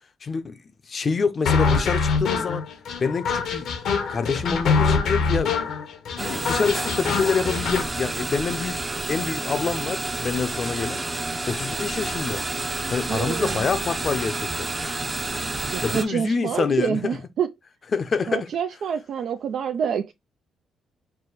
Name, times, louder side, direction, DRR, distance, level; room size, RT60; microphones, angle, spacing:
voice 1, 0.2-2.7 3.0-3.7 4.1-5.6 6.2-8.8 9.1-11.0 11.5-12.4 12.9-14.7 15.8-17.2 17.9-18.5, left 5 dB, 40° left, 0.6 m, -26 dB
sound 1, 1.5-7.9, left 5 dB, 75° left, 0.9 m, -24 dB
sound 2, 6.2-16.1, right 2 dB, 20° right, 0.6 m, -29 dB
voice 2, 13.1-13.7 15.7-17.5 18.3-20.1, right 7 dB, 65° right, 0.4 m, -27 dB
4.7 x 2.1 x 3.9 m
cardioid pair, 90°, 0 cm